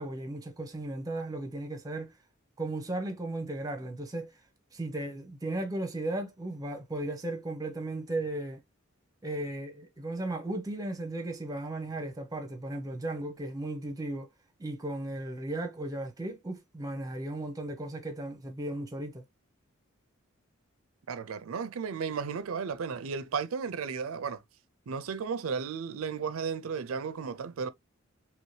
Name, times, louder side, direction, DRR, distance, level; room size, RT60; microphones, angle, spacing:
voice 1, 0.0-2.1 2.6-4.3 4.7-8.6 9.2-14.3 14.6-19.2, right 1 dB, 15° right, 0.7 m, -36 dB
voice 2, 21.1-24.4 24.9-27.7, right 6 dB, 90° right, 0.4 m, -34 dB
3.0 x 2.8 x 3.1 m
head